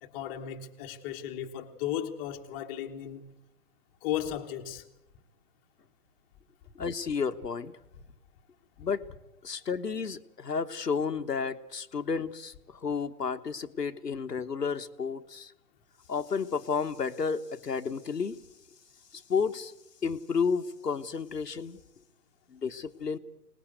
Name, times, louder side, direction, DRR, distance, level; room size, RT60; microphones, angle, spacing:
voice 1, 0.0-3.3 4.0-4.8, left 10 dB, 20° left, 1.4 m, -35 dB
voice 2, 6.8-7.7 8.8-9.1 9.4-15.5 16.1-18.4 19.1-19.7 20.0-21.8 22.5-23.2, left 5 dB, 85° left, 1.3 m, -31 dB
23.5 x 20.0 x 7.9 m
figure-of-eight pair, 135°, 47 cm